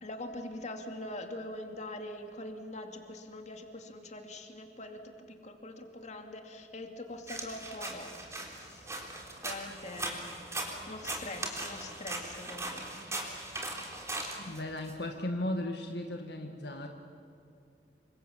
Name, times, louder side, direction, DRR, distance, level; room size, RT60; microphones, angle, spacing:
voice 1, 0.0-8.1 8.4-9.2 9.4-12.8, left 1 dB, 40° left, 4 dB, 2.6 m, -43 dB
sound 1, 7.3-14.9, right 2 dB, 15° right, 3.6 m, -39 dB
voice 2, 14.4-16.9, left 1 dB, 65° left, 4 dB, 1.8 m, -36 dB
28.0 x 25.5 x 7.3 m, 2.6 s
head